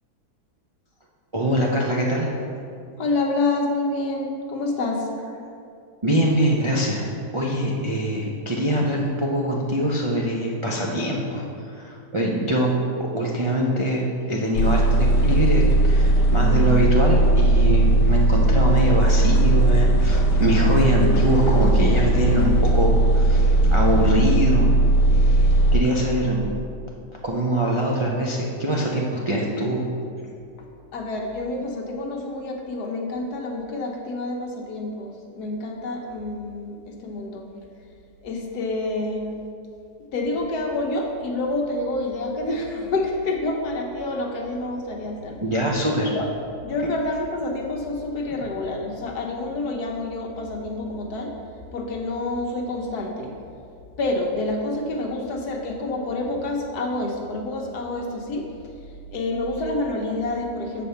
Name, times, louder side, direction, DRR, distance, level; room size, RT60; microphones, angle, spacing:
voice 1, 1.3-2.3 6.0-12.7 13.0-24.7 25.1-26.5 27.2-29.9 45.4-46.1, right 1 dB, 45° right, -3 dB, 0.4 m, -23 dB
voice 2, 3.0-5.1 16.2-16.8 20.6-20.7 21.0-21.2 30.9-37.4 38.2-39.4 40.1-45.4 46.1-46.3 46.6-51.3 51.7-53.3 54.0-58.5 59.1-60.9, left 2 dB, 70° left, 1 dB, 1.5 m, -28 dB
sound 1, 14.5-25.8, right 2 dB, 90° left, 1.5 m, -18 dB
7.5 x 4.3 x 6.8 m, 2.4 s
omnidirectional pair, 1.8 m